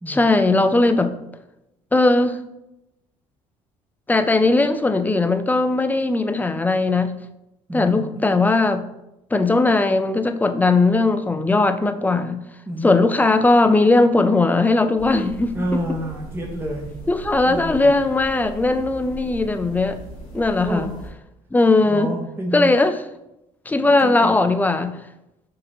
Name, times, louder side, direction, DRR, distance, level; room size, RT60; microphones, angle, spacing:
voice 1, 0.1-1.1 1.9-2.4 4.1-7.1 7.7-8.9 9.3-12.4 12.8-15.5 17.1-20.0 20.3-20.9 21.5-22.1 22.5-22.9 23.7-25.0, left 2 dB, 10° left, 0.4 m, -18 dB
voice 2, 7.7-8.2 12.7-13.1 15.5-16.9 17.4-17.9 20.6-21.0 21.9-22.7 24.0-24.4, equal, 15° right, 0.8 m, -29 dB
sound 1, 15.0-21.1, right 2 dB, 90° left, 0.9 m, -38 dB
6.4 x 2.9 x 2.7 m
hypercardioid pair, 55°, 18 cm